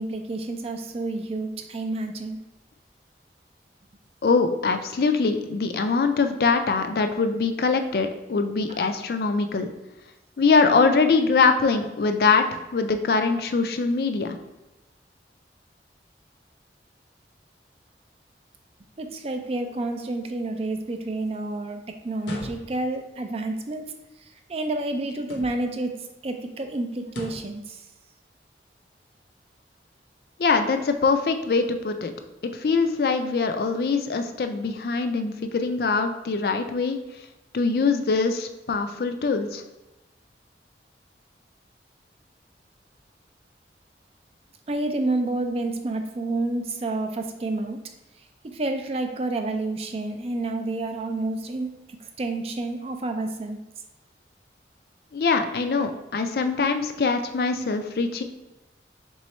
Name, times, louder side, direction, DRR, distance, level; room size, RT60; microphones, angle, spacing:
voice 1, 0.0-2.4 8.7-8.8 19.0-23.8 24.2-27.8 44.7-47.8 48.4-51.7 52.0-53.6, right 2 dB, 35° right, 5 dB, 0.4 m, -29 dB
voice 2, 4.2-9.7 10.4-14.4 30.4-32.1 32.4-37.0 37.5-39.6 55.1-58.2, left 4 dB, 55° left, 7 dB, 0.4 m, -23 dB
sound 1, 22.2-23.0 25.2-25.8 27.1-27.6, left 1 dB, 80° left, 0.7 m, -38 dB
3.7 x 3.1 x 4.2 m, 0.99 s
head